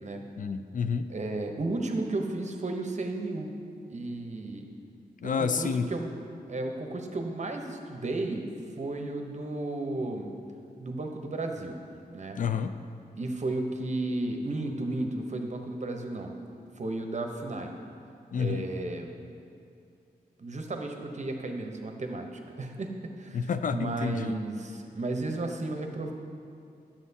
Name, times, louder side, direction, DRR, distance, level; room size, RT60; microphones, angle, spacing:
voice 1, 0.4-1.1 5.2-5.9 12.4-12.8 18.3-18.7 23.3-24.4, left 6 dB, 55° left, 9 dB, 0.4 m, -29 dB
voice 2, 1.1-3.5 3.9-4.7 5.2-6.1 6.5-8.5 8.8-10.3 10.8-11.7 12.1-12.4 13.2-16.3 16.8-17.7 18.4-19.1 20.4-26.1, right 2 dB, 45° right, 3 dB, 0.8 m, -33 dB
9.3 x 7.2 x 2.7 m, 2.5 s
cardioid pair, 50°, 17 cm